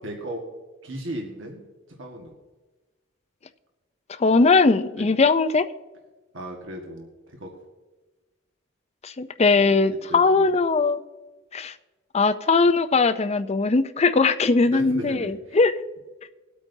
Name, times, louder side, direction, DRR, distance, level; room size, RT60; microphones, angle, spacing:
voice 1, 0.0-0.4 0.8-1.6 1.9-2.3 4.9-5.1 6.3-7.5 9.5-10.5 14.6-15.6, right 1 dB, 65° right, 0 dB, 1.6 m, -36 dB
voice 2, 4.2-5.7 9.0-11.0 11.5-11.7 12.1-15.7, left 3 dB, 30° left, 11 dB, 0.5 m, -20 dB
21.5 x 8.4 x 2.7 m, 1.2 s
head